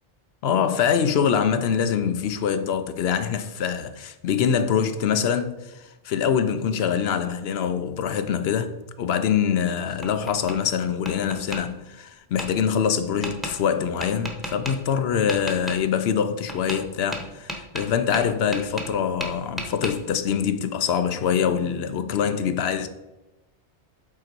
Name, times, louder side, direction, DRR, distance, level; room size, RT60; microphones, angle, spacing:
voice 1, 0.4-8.7 9.0-22.9, left 7 dB, 75° left, 0.9 m, -24 dB
Tap, 9.5-10.6 11.1-11.6 12.4-12.5 13.2-13.5 14.0-14.7 15.3-15.8 16.5-16.8 17.1-19.0 19.2-19.9, equal, ahead, 1.0 m, -33 dB
8.3 x 3.9 x 4.4 m
omnidirectional pair, 1.1 m